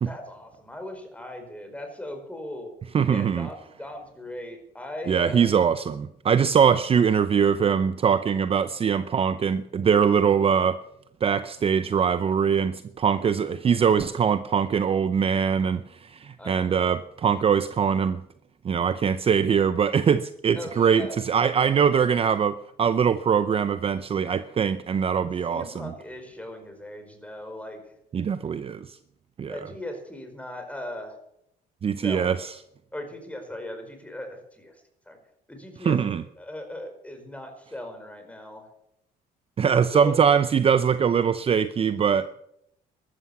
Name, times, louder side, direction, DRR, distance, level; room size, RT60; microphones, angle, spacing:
voice 1, 0.0-2.7 3.1-5.5 16.4-16.9 20.5-21.1 25.5-27.8 29.5-31.2 32.0-32.3 32.9-35.2 35.5-38.7 39.9-40.1, left 1 dB, 10° left, 5 dB, 4.9 m, -38 dB
voice 2, 2.9-3.5 5.1-10.8 11.2-18.2 18.6-25.9 28.1-29.0 29.4-29.7 31.8-32.5 35.9-36.2 39.6-42.3, right 7 dB, 35° right, 12 dB, 0.7 m, -22 dB
14.0 x 13.0 x 7.2 m, 0.76 s
cardioid pair, 110°, 17 cm